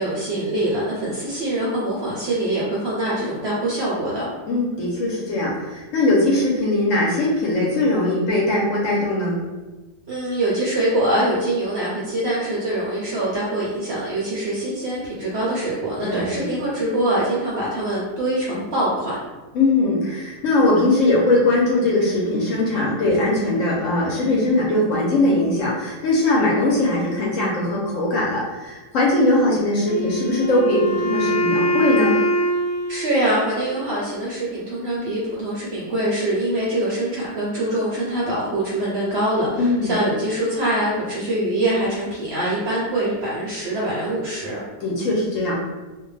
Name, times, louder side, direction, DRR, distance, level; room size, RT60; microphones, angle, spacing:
voice 1, 0.0-4.3 10.1-19.2 32.9-44.6, right 1 dB, 65° right, -7 dB, 0.7 m, -24 dB
voice 2, 4.5-9.4 16.0-16.5 19.5-32.2 39.6-40.0 44.8-45.5, left 2 dB, 65° left, -4 dB, 0.9 m, -20 dB
Wind instrument woodwind instrument, 29.9-33.9, equal, 90° left, 1.2 m, -23 dB
2.5 x 2.1 x 3.1 m, 1.2 s
omnidirectional pair, 1.6 m